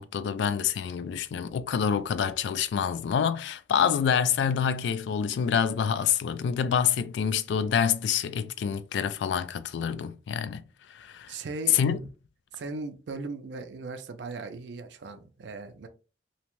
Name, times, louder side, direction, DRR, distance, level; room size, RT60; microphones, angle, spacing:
voice 1, 0.0-10.6 10.9-11.3 11.7-12.0, left 7 dB, 80° left, 0.3 m, -27 dB
voice 2, 11.3-11.8 12.5-15.9, right 3 dB, 80° right, 0.4 m, -38 dB
2.7 x 2.1 x 2.9 m
head